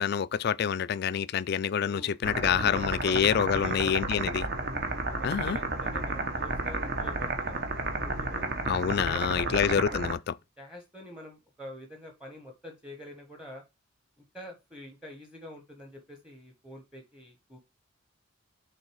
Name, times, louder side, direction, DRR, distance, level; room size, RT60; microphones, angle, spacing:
voice 1, 0.0-4.5 5.2-5.6 8.7-10.3, left 7 dB, 50° left, 0.3 m, -27 dB
voice 2, 1.8-4.2 5.0-7.8 8.0-8.5 9.0-9.7 10.6-13.6 14.3-17.6, left 1 dB, 5° right, 1.1 m, -46 dB
sound 1, 2.2-10.1, right 2 dB, 50° right, 1.2 m, -32 dB
6.5 x 3.9 x 4.6 m
head